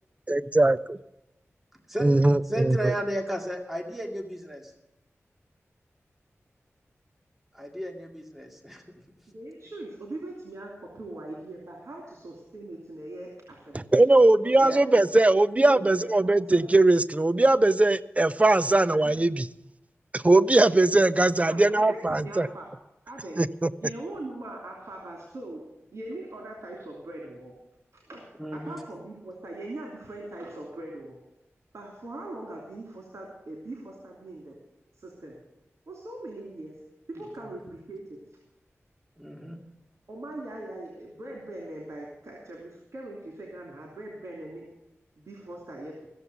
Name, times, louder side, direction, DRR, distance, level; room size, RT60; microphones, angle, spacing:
voice 1, 0.3-0.8 2.0-2.9 13.7-19.5 20.1-22.5 23.4-23.7, right 2 dB, 25° right, 15 dB, 0.5 m, -20 dB
voice 2, 2.5-4.7 7.5-8.8 14.6-14.8 28.4-28.8 39.2-39.6, right 1 dB, 5° right, 2 dB, 2.2 m, -33 dB
voice 3, 9.3-13.9 14.4-16.6 18.9-19.2 21.4-22.7 23.1-23.4 23.8-25.6 25.9-27.5 27.9-31.2 31.7-34.6 35.0-35.4 35.9-36.8 37.1-38.4 40.1-44.7 45.2-46.1, right 1 dB, 70° right, -1 dB, 2.9 m, -41 dB
15.0 x 7.1 x 8.0 m, 0.90 s
wide cardioid pair, 55°, 5 cm